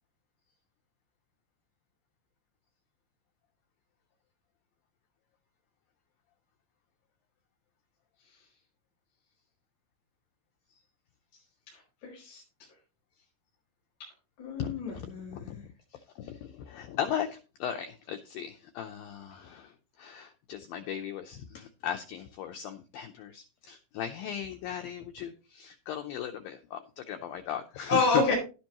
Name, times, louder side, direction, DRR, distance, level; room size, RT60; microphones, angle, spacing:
voice 1, 12.0-12.4 14.4-15.6 27.9-28.3, left 3 dB, 45° left, -3 dB, 5.2 m, -28 dB
voice 2, 14.6-15.1 15.3-15.6 16.2-17.3 17.6-19.7 20.0-26.8 27.1-28.0, left 9 dB, 90° left, 6 dB, 2.0 m, -37 dB
11.5 x 10.0 x 3.0 m, 0.32 s
omnidirectional pair, 5.1 m